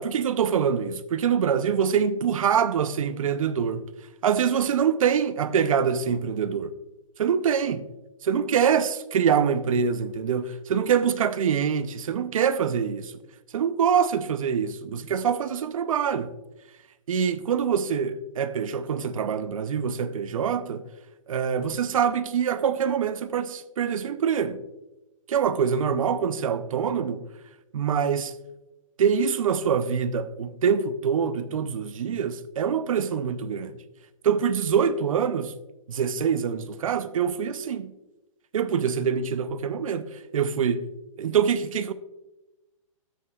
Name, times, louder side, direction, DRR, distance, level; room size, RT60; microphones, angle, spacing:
voice 1, 0.0-3.9 4.2-6.7 7.2-7.8 8.2-13.1 13.5-16.3 17.1-20.8 21.3-24.6 25.3-27.2 27.7-28.3 29.0-33.8 34.2-35.5 35.9-37.9 38.5-40.9 41.2-41.9, right 7 dB, 75° right, 0.7 m, -25 dB
13.0 x 8.4 x 2.4 m
hypercardioid pair, 165°, 17 cm